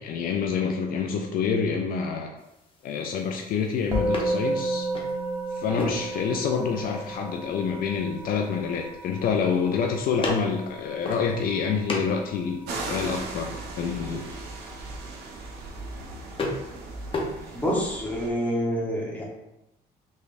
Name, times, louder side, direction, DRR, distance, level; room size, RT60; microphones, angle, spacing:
voice 1, 0.0-2.3 2.8-4.9 5.5-14.3, left 6 dB, 60° left, 3 dB, 0.4 m, -27 dB
sound 1, 2.4-17.9, left 2 dB, 30° left, 0.7 m, -38 dB
Musical instrument, 3.9-13.4, right 2 dB, 25° right, 0.7 m, -33 dB
sound 2, 12.7-18.3, right 3 dB, 75° right, 0.7 m, -37 dB
voice 2, 17.5-19.2, equal, 10° left, -3 dB, 0.9 m, -27 dB
3.4 x 3.2 x 2.5 m, 0.89 s
cardioid pair, 110°, 17 cm